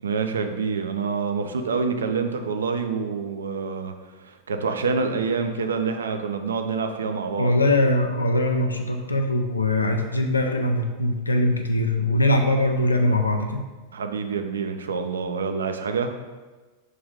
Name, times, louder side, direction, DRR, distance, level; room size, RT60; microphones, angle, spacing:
voice 1, 0.0-3.9 4.2-7.5 13.9-16.1, right 5 dB, 70° right, 6 dB, 0.4 m, -27 dB
voice 2, 7.4-13.7, left 1 dB, 80° left, 4 dB, 0.3 m, -22 dB
4.8 x 2.6 x 3.5 m, 1.3 s
figure-of-eight pair, 90°, 0 cm